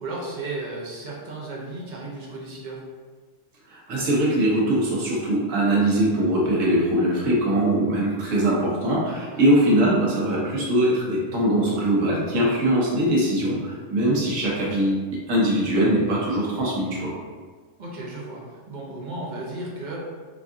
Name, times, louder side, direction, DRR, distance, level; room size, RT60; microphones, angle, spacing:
voice 1, 0.0-2.8 9.3-9.5 17.8-20.0, right 2 dB, 45° right, -4 dB, 0.8 m, -34 dB
voice 2, 3.7-17.2, right 1 dB, 75° right, -5 dB, 1.3 m, -22 dB
4.6 x 2.4 x 2.6 m, 1.5 s
omnidirectional pair, 1.3 m